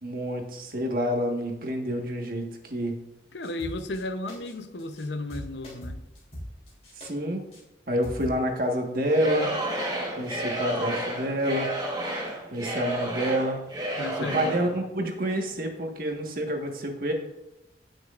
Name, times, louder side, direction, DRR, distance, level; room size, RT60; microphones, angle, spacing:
voice 1, 0.0-2.9 7.0-7.4 7.9-9.5 10.2-11.7 12.5-13.6 14.2-17.1, equal, 50° right, 1.5 m, -28 dB
voice 2, 3.3-6.0 13.9-14.8, left 2 dB, 75° left, 0.8 m, -34 dB
sound 1, 3.4-4.0 4.3-4.5 4.8-5.0 5.3-7.1 7.5-7.6 8.0-8.4, equal, 40° left, 3.3 m, -40 dB
Singing / Crowd, 9.0-14.7, right 1 dB, 20° right, 1.4 m, -31 dB
16.5 x 6.3 x 2.5 m
head